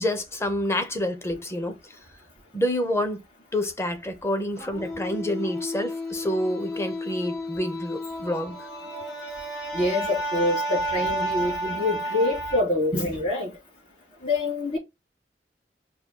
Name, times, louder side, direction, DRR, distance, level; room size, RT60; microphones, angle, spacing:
voice 1, 0.0-1.8 2.5-3.2 3.5-8.7, left 1 dB, 15° left, 0.7 m, -28 dB
sound 1, 4.6-12.6, equal, 70° left, 2.0 m, -32 dB
voice 2, 9.7-13.5 14.2-14.8, left 2 dB, 45° left, 3.6 m, -25 dB
5.3 x 2.7 x 3.7 m
head